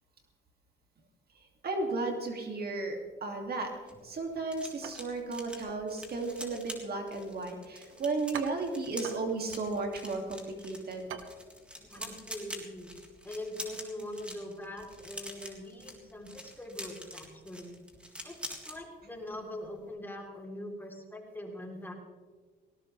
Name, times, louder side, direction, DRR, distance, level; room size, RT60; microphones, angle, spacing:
voice 1, 1.6-3.7 4.0-11.1, right 3 dB, 50° right, 3 dB, 2.6 m, -34 dB
sound 1, 3.6-18.8 19.1-19.4 19.6-19.9, equal, 5° right, 3.6 m, -46 dB
sound 2, 4.8-13.0, right 7 dB, 80° right, 1.3 m, -48 dB
voice 2, 11.8-12.9 13.2-17.7 18.2-21.9, left 1 dB, 10° left, 1 dB, 3.6 m, -42 dB
18.5 x 18.5 x 3.4 m, 1.5 s
cardioid pair, 90°, 20 cm